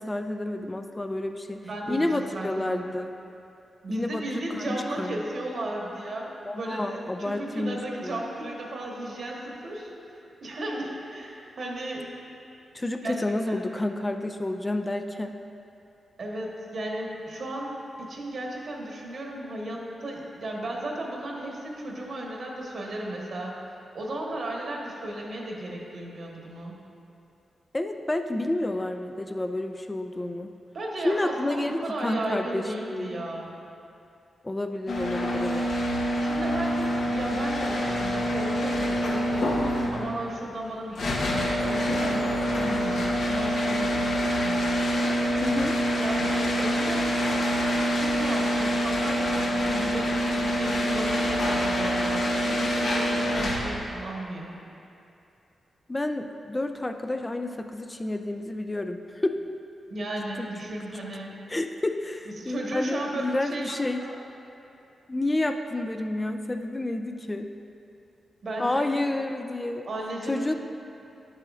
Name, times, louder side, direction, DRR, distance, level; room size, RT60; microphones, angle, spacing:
voice 1, 0.0-3.1 3.9-4.3 4.5-5.2 6.4-8.2 12.7-15.4 27.7-30.5 31.0-33.1 34.4-35.6 45.4-45.8 55.9-59.4 60.4-60.5 61.5-64.0 65.1-67.5 68.6-69.9 70.3-70.5, left 2 dB, 20° left, 6 dB, 0.3 m, -30 dB
voice 2, 1.6-2.8 3.8-6.3 6.6-12.1 13.0-13.2 13.5-13.6 16.2-23.6 23.9-26.7 30.7-33.5 36.2-39.5 39.9-44.7 46.0-47.1 47.9-54.5 59.9-61.3 62.2-64.2 68.4-68.9 69.9-70.5, right 1 dB, 65° right, -2 dB, 1.3 m, -35 dB
sound 1, 34.9-53.9, equal, 75° left, 1.0 m, -26 dB
9.9 x 7.5 x 2.4 m, 2.7 s
cardioid pair, 75°, 0 cm